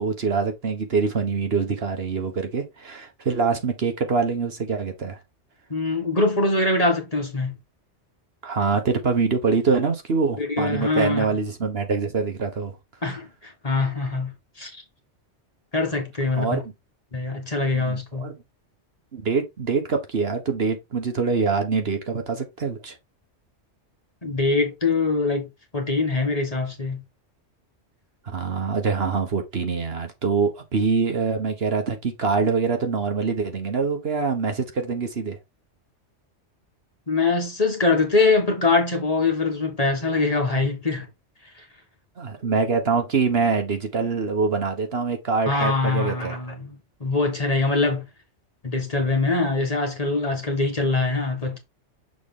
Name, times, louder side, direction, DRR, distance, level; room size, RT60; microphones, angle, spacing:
voice 1, 0.0-5.2 8.4-12.7 16.3-16.6 17.7-18.3 19.1-23.0 28.3-35.4 42.2-46.4, right 5 dB, 55° right, 1.4 m, -24 dB
voice 2, 5.7-7.5 10.4-11.3 13.0-14.8 15.7-16.6 17.1-18.3 24.2-25.5 25.7-27.0 37.1-41.1 45.5-48.1 48.6-51.6, left 3 dB, 30° left, 1.5 m, -23 dB
6.5 x 4.2 x 3.7 m
omnidirectional pair, 1.2 m